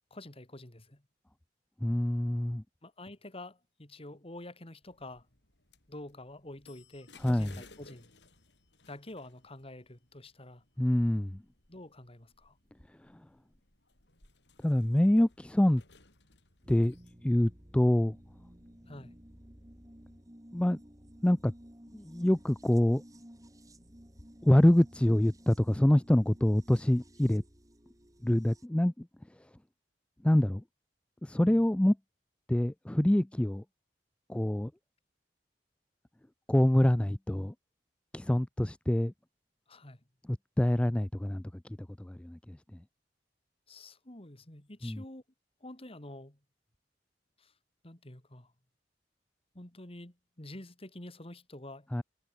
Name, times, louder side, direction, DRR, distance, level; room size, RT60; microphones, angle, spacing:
voice 1, 0.1-1.0 2.8-5.3 5.9-8.1 8.9-10.6 11.7-12.6 18.9-19.1 31.4-31.6 39.7-40.0 43.7-45.2 45.6-46.4 47.4-47.5 47.8-48.5 49.5-51.9, left 1 dB, 35° left, 2.6 m, -48 dB
voice 2, 1.8-2.6 7.2-7.5 10.8-11.4 12.9-13.3 14.6-15.8 16.7-17.0 17.2-18.2 20.5-20.8 21.2-21.5 21.9-23.0 24.4-27.4 28.2-29.5 30.2-30.6 31.2-32.0 32.5-33.6 34.3-34.7 36.5-37.5 38.1-39.1 40.3-42.8 44.8-45.0 51.9-52.0, left 1 dB, 5° left, 0.3 m, -26 dB
sound 1, 4.8-20.2, left 3 dB, 75° left, 5.9 m, -61 dB
sound 2, 16.6-28.7, equal, 20° right, 4.6 m, -54 dB
head